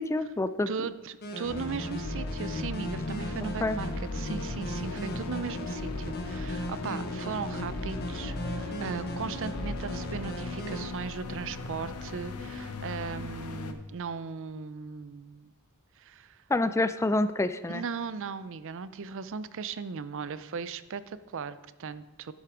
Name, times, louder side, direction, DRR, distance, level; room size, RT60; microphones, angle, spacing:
voice 1, 0.0-0.7 3.6-3.8 16.5-17.8, left 2 dB, 15° left, 12 dB, 0.3 m, -27 dB
voice 2, 0.7-15.5 16.0-16.4 17.7-22.3, right 5 dB, 60° right, 15 dB, 0.5 m, -37 dB
sound 1, 1.2-10.9, equal, 45° left, 1.3 m, -37 dB
sound 2, 1.5-13.7, left 2 dB, 85° left, 0.9 m, -37 dB
10.5 x 7.8 x 5.0 m, 1.2 s
head